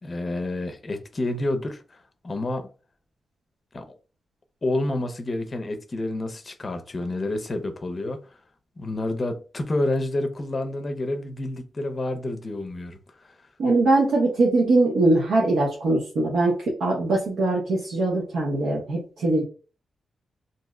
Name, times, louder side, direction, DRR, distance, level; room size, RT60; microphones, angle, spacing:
voice 1, 0.0-2.7 3.7-3.9 4.6-8.4 8.8-13.4, left 2 dB, 35° left, 0.5 m, -29 dB
voice 2, 13.6-19.4, right 2 dB, 90° right, 0.8 m, -22 dB
2.6 x 2.1 x 3.6 m
cardioid pair, 105°, 0 cm